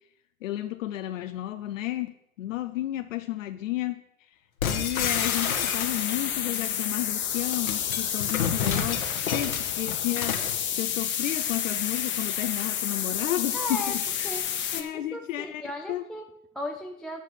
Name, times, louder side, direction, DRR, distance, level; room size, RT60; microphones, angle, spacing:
voice 1, 0.4-2.1 2.4-4.0 4.6-9.0 9.3-14.0 14.7-16.0, left 14 dB, 65° left, 8 dB, 0.8 m, -32 dB
sound 1, 4.6-6.3 7.3-10.6, left 7 dB, 85° left, 1.7 m, -30 dB
sound 2, 5.0-14.8, left 9 dB, 25° left, 1.3 m, -30 dB
voice 2, 13.5-17.2, left 1 dB, ahead, 2 dB, 0.4 m, -37 dB
9.6 x 8.2 x 6.3 m, 0.79 s
hypercardioid pair, 105°, 41 cm